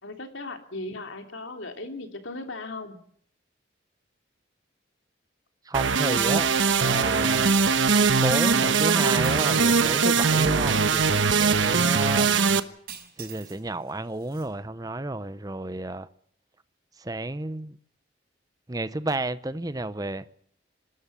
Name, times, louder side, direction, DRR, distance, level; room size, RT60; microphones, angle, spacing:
voice 1, 0.0-3.0, left 2 dB, 90° left, 2.9 m, -37 dB
voice 2, 5.7-6.5 6.7-7.6 8.2-12.3 13.2-16.1 17.0-17.8 18.7-20.2, right 2 dB, 20° right, 0.8 m, -31 dB
sound 1, 5.7-12.6, right 5 dB, 85° right, 1.1 m, -21 dB
sound 2, 9.2-10.4 12.9-13.6 13.9-14.5, right 9 dB, 50° right, 5.5 m, -43 dB
24.5 x 13.5 x 8.3 m
head